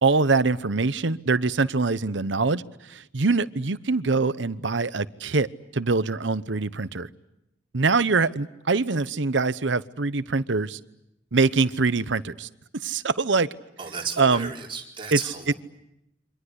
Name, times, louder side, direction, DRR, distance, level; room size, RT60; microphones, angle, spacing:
voice 1, 0.0-2.6 2.9-5.5 5.7-7.1 7.7-10.8 11.3-12.5 12.8-13.5 14.2-14.5 15.1-15.2, right 4 dB, 70° right, 0.9 m, -23 dB
voice 2, 13.8-15.5, right 5 dB, 30° right, 4.6 m, -33 dB
28.5 x 25.0 x 8.2 m
head